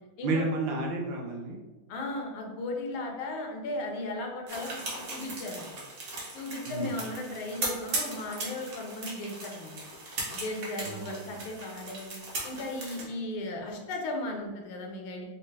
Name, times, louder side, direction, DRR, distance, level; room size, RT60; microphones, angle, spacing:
voice 1, 0.2-1.6 6.7-7.0 10.8-11.4, right 2 dB, 75° right, 0 dB, 1.2 m, -32 dB
voice 2, 1.9-5.8 6.3-9.8 10.3-12.2 12.4-15.2, left 2 dB, 80° left, 1 dB, 1.5 m, -36 dB
sound 1, 4.5-13.0, right 2 dB, 55° right, 0.9 m, -38 dB
4.3 x 2.0 x 3.2 m, 1.3 s
omnidirectional pair, 2.3 m